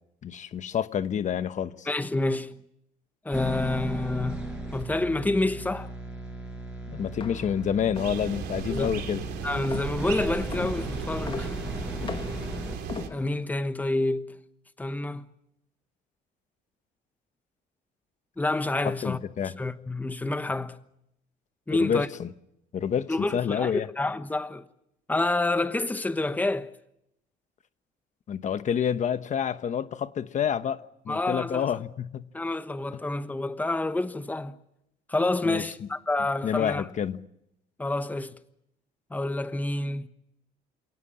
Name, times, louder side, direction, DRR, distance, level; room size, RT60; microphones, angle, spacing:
voice 1, 0.2-1.9 6.9-9.2 19.0-19.5 21.8-22.3 22.7-23.9 28.3-32.3 35.4-35.6 36.4-37.2, left 8 dB, 45° left, 1.1 m, -28 dB
voice 2, 1.9-2.6 3.2-5.9 8.7-8.9 9.4-11.6 13.1-14.3 14.8-15.2 18.4-19.2 19.4-20.8 21.7-22.1 23.1-24.6 25.1-26.7 31.1-31.6 32.3-34.5 35.1-36.8 37.8-38.3 39.1-40.1, left 2 dB, 10° left, 1.2 m, -28 dB
sound 1, 3.3-12.8, right 1 dB, 5° right, 7.3 m, -36 dB
sound 2, 7.1-13.6, left 5 dB, 30° left, 1.9 m, -40 dB
sound 3, 7.9-13.1, right 9 dB, 75° right, 3.3 m, -36 dB
28.0 x 18.0 x 8.7 m
cardioid pair, 110°, 17 cm